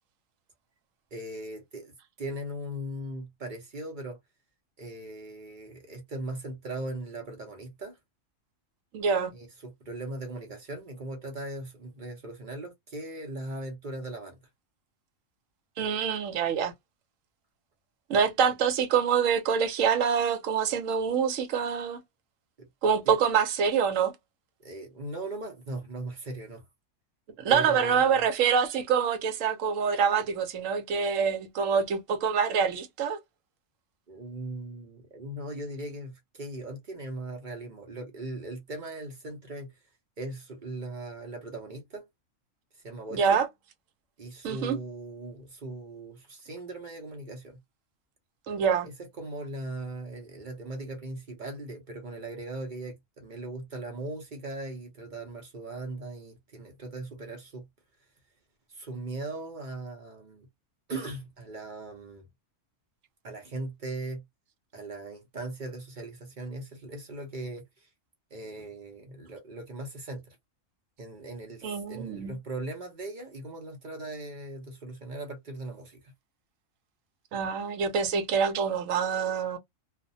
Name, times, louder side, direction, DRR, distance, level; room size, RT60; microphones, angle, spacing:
voice 1, 1.1-4.2 4.8-8.0 9.3-14.4 22.6-22.7 23.1-23.2 24.6-26.6 27.5-28.2 34.1-39.7 40.2-42.1 42.8-43.4 44.2-47.6 49.2-57.7 58.7-60.5 60.9-62.3 63.2-64.2 64.7-67.9 68.3-70.4 71.0-76.0, right 2 dB, 45° right, 0.7 m, -39 dB
voice 2, 8.9-9.3 15.8-16.7 18.1-22.0 22.8-24.1 27.4-33.2 43.1-43.5 44.4-44.8 48.5-48.9 71.6-72.3 77.3-79.6, right 6 dB, 75° right, 1.0 m, -26 dB
2.4 x 2.1 x 2.6 m
omnidirectional pair, 1.4 m